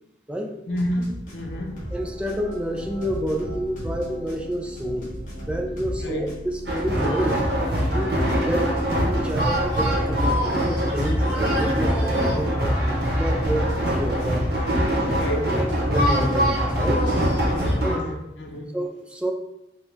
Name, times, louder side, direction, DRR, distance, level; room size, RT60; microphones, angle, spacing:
voice 1, 0.7-1.8 6.0-6.2 8.5-8.6 15.1-15.5 17.5-18.7, equal, 90° left, 2 dB, 0.7 m, -30 dB
sound 1, 0.8-2.0 2.3-6.0 6.3-10.0 10.3-12.0 13.7-15.3 15.7-17.6, equal, 45° left, 1.3 m, -36 dB
sound 2, 1.3-17.8, equal, 30° left, 0.8 m, -40 dB
voice 2, 1.9-5.1 5.4-7.4 7.9-8.7 9.0-14.5 15.9-17.0 17.8-18.0 18.5-19.3, equal, 5° right, 2 dB, 0.4 m, -29 dB
sound 3, 6.7-18.0, equal, 65° right, 1.0 m, -23 dB
4.4 x 2.3 x 3.4 m, 0.88 s
head